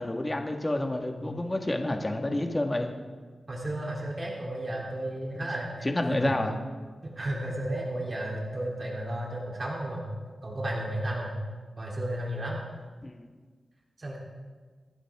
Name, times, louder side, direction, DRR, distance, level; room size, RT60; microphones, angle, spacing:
voice 1, 0.0-2.9 5.8-6.6 13.0-13.3, left 1 dB, 20° left, 3 dB, 1.8 m, -29 dB
voice 2, 3.5-6.3 7.0-10.1 10.4-11.4 11.8-12.6 14.0-14.2, right 1 dB, 40° right, -3 dB, 3.5 m, -33 dB
27.5 x 11.5 x 3.7 m, 1.5 s
wide cardioid pair, 95°, 0 cm